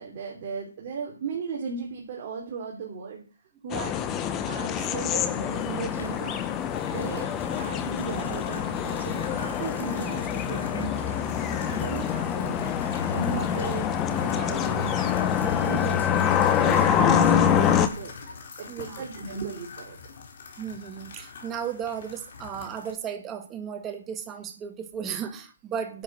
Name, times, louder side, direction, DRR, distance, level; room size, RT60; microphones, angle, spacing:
voice 1, 0.0-3.2 3.6-3.9 4.5-6.4 6.9-7.3 7.6-13.9 14.1-18.1 18.6-20.0, right 5 dB, 35° right, -1 dB, 3.3 m, -36 dB
sound 1, 3.7-17.9, left 8 dB, 15° left, 1.0 m, -25 dB
sound 2, 5.4-22.9, left 5 dB, 45° left, 4.2 m, -44 dB
voice 2, 18.7-19.0 20.6-26.0, right 8 dB, 15° right, 6 dB, 1.7 m, -35 dB
11.0 x 7.5 x 7.6 m, 0.35 s
hypercardioid pair, 160°, 0 cm